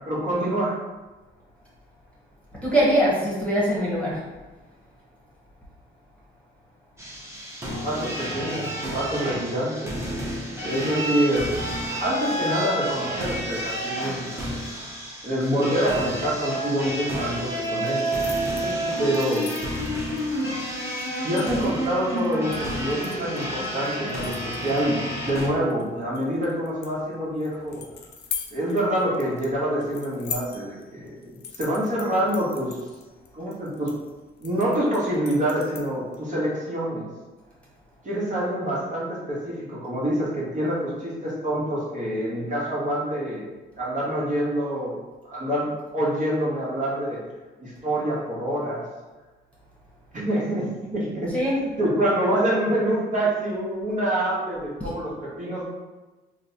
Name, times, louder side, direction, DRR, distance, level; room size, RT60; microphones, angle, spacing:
voice 1, 0.1-0.8 7.8-10.0 10.6-11.6 12.0-14.5 15.2-18.1 19.0-19.5 21.2-27.8 28.5-32.8 33.3-33.9 34.4-37.0 38.0-43.4 43.8-45.0 45.2-47.2 47.6-48.8 50.1-51.3 51.8-55.6, right 1 dB, 40° right, -6 dB, 1.3 m, -26 dB
voice 2, 2.6-4.2 10.8-11.0 18.6-18.8 51.3-51.6, equal, 5° left, -6 dB, 1.2 m, -23 dB
sound 1, 7.0-25.5, equal, 15° right, 1.0 m, -30 dB
sound 2, 17.5-36.2, left 6 dB, 60° left, 0.5 m, -42 dB
3.2 x 2.2 x 4.0 m, 1.2 s
cardioid pair, 90°, 20 cm